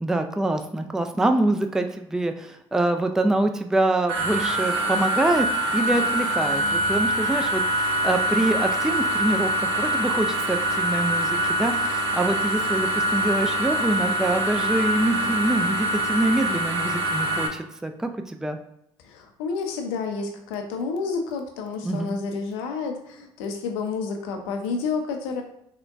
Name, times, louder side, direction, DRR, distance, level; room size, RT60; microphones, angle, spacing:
voice 1, 0.0-5.5 5.7-18.6 21.8-22.2, right 2 dB, 5° right, 6 dB, 0.3 m, -25 dB
sound 1, 4.1-17.5, right 1 dB, 85° right, 0.5 m, -24 dB
voice 2, 19.0-25.4, left 4 dB, 80° left, 3 dB, 0.6 m, -30 dB
3.7 x 2.1 x 3.4 m, 0.78 s
hypercardioid pair, 55°, 13 cm